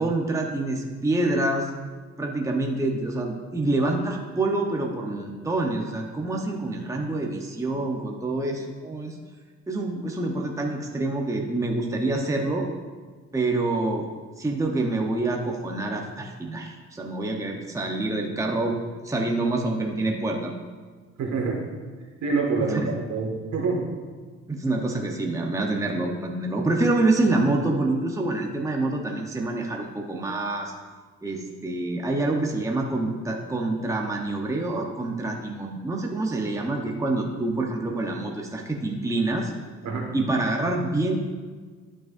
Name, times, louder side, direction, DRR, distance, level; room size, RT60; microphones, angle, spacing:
voice 1, 0.0-1.7 2.2-9.2 9.7-12.7 13.3-14.1 14.4-18.7 19.0-20.5 22.7-22.9 24.5-30.7 31.2-39.5 40.1-41.1, right 2 dB, 10° right, 1 dB, 0.9 m, -26 dB
voice 2, 21.2-21.6 22.2-23.8 39.8-40.1, right 4 dB, 70° right, -1 dB, 1.8 m, -26 dB
12.0 x 6.1 x 2.6 m, 1.5 s
cardioid pair, 90°, 30 cm